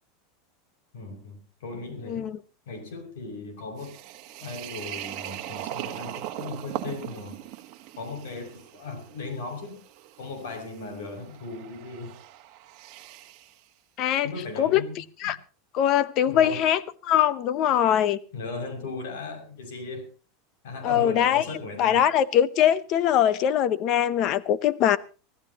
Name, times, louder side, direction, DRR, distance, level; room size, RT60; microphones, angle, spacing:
voice 1, 0.9-2.3 2.7-4.0 4.4-7.4 8.0-9.8 10.2-12.2 14.2-15.3 16.3-16.6 18.3-20.1 20.6-22.1, left 3 dB, 75° left, 6.4 m, -37 dB
voice 2, 2.1-2.4 14.0-14.3 14.6-14.8 15.2-15.4 15.7-18.2 20.8-21.4 21.8-25.0, left 10 dB, 35° left, 0.8 m, -22 dB
sound 1, 3.8-13.6, right 13 dB, 40° right, 1.4 m, -40 dB
24.5 x 15.0 x 3.0 m
supercardioid pair, 175°, 0 cm